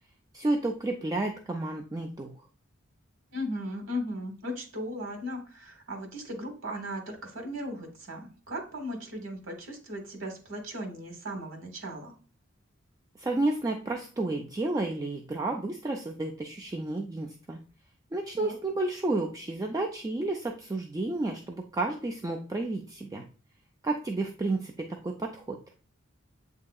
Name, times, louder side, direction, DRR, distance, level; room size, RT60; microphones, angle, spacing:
voice 1, 0.3-2.3 13.2-17.6 18.1-23.2 23.8-25.6, right 2 dB, 20° right, 2 dB, 0.3 m, -31 dB
voice 2, 3.3-12.1 18.4-18.5, equal, 80° right, 3 dB, 1.2 m, -37 dB
7.6 x 2.8 x 2.3 m, 0.39 s
head